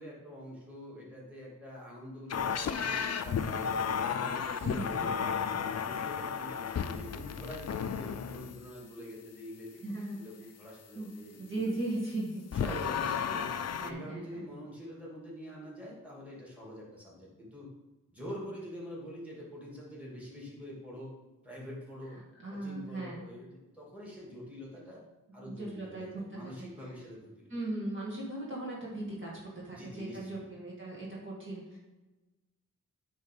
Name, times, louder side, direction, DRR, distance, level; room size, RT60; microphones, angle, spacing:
voice 1, 0.0-3.7 4.1-9.7 10.1-11.6 12.5-13.5 13.8-17.7 18.1-21.1 21.4-22.2 22.5-25.0 25.3-27.5 29.7-30.5, left 1 dB, 5° right, -5 dB, 2.3 m, -45 dB
sound 1, 2.3-8.6 12.5-13.9, left 7 dB, 55° left, 0.5 m, -33 dB
voice 2, 4.6-5.1 9.8-10.2 10.9-11.1 11.4-12.4 13.8-14.4 22.4-23.2 25.5-26.5 27.5-31.8, right 2 dB, 40° right, -5 dB, 1.8 m, -38 dB
9.8 x 3.4 x 5.3 m, 1.1 s
wide cardioid pair, 115°, 32 cm